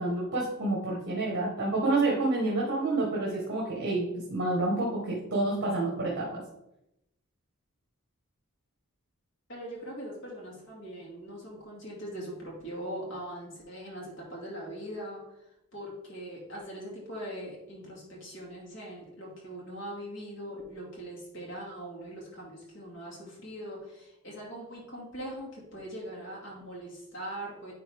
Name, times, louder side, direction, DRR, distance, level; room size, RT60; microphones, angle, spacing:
voice 1, 0.0-6.4, right 2 dB, 50° right, -4 dB, 1.5 m, -28 dB
voice 2, 9.5-15.2 15.7-27.7, equal, 60° left, -4 dB, 2.4 m, -41 dB
10.0 x 3.8 x 3.5 m, 0.86 s
head